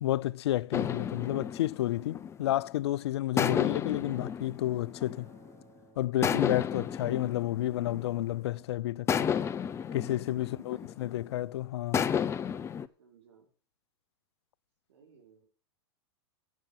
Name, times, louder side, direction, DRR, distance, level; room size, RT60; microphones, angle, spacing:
voice 1, 0.0-5.3 6.0-9.3 9.9-12.1, left 14 dB, 75° left, 0.5 m, -31 dB
sound 1, 0.7-2.8 3.4-5.6 6.2-8.5 9.1-11.3 11.9-12.9, left 8 dB, 20° left, 0.5 m, -32 dB
Acoustic guitar, 5.1-10.3, right 4 dB, 25° right, 4.9 m, -64 dB
voice 2, 10.4-11.3 13.0-13.5 14.9-15.4, right 6 dB, 80° right, 4.8 m, -61 dB
10.5 x 7.1 x 7.1 m
hypercardioid pair, 120°, 14 cm